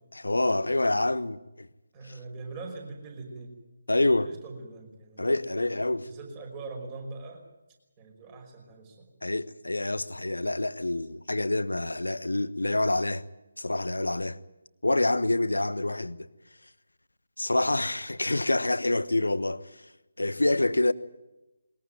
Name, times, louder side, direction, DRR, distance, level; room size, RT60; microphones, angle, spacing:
voice 1, 0.1-1.7 3.9-4.3 5.2-6.1 9.2-13.2 13.6-14.4 14.8-16.3 17.4-19.9 20.2-20.9, left 2 dB, 70° left, 1.2 m, -27 dB
voice 2, 1.9-3.5 3.9-5.5 5.9-7.4 8.0-9.1, right 3 dB, 20° right, 5.5 m, -42 dB
21.5 x 20.5 x 9.2 m
figure-of-eight pair, 150°, 0 cm